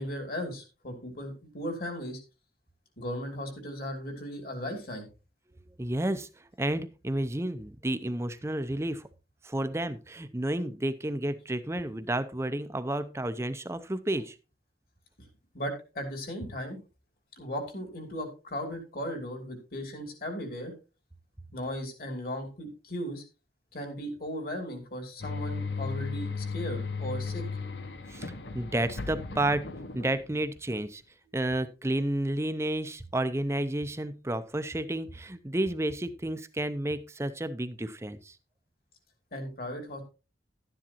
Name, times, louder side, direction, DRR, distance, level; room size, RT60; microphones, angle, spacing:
voice 1, 0.0-2.2 3.0-5.1 15.2-15.3 15.5-16.8 17.4-20.7 21.5-23.2 23.7-27.4 39.3-40.0, equal, 55° left, 5 dB, 2.8 m, -37 dB
voice 2, 5.8-9.1 9.4-14.4 28.1-31.0 31.3-38.4, right 1 dB, 15° right, 12 dB, 0.6 m, -31 dB
sound 1, 25.2-30.6, left 4 dB, 85° left, 1.1 m, -36 dB
12.0 x 10.0 x 2.9 m, 0.31 s
head